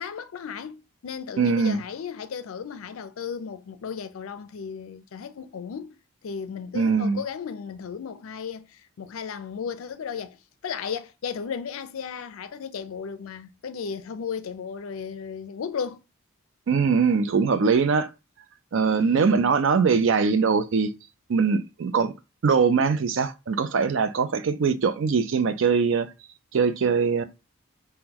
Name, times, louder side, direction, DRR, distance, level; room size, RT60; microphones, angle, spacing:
voice 1, 0.0-6.0 6.2-10.4 10.6-16.0 18.9-19.6, left 6 dB, 75° left, 0.4 m, -35 dB
voice 2, 1.4-1.8 6.7-7.2 16.7-18.1 18.7-20.9 21.3-22.1 22.4-26.1 26.5-27.2, right 5 dB, 65° right, 0.4 m, -22 dB
3.6 x 2.1 x 2.8 m
head